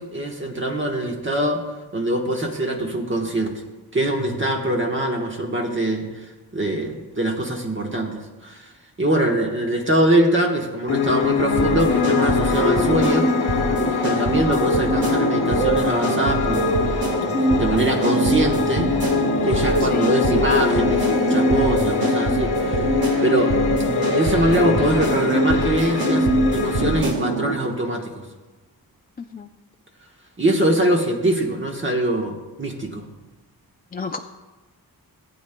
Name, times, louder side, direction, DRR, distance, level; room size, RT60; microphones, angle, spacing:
voice 1, 0.0-1.6 1.9-3.6 3.9-8.7 9.0-13.3 14.0-16.7 17.6-18.9 19.4-22.9 23.2-23.6 24.1-26.3 26.5-28.3 30.4-33.1, right 1 dB, 30° right, 0 dB, 1.2 m, -23 dB
Piano, 10.9-27.0, left 6 dB, 90° left, 1.0 m, -23 dB
sound 1, 11.5-27.5, right 2 dB, 70° right, 1.9 m, -23 dB
voice 2, 19.8-20.2 29.2-29.5 33.9-34.2, left 4 dB, 25° left, 4 dB, 0.4 m, -32 dB
18.0 x 8.8 x 2.2 m, 1.2 s
wide cardioid pair, 110°, 37 cm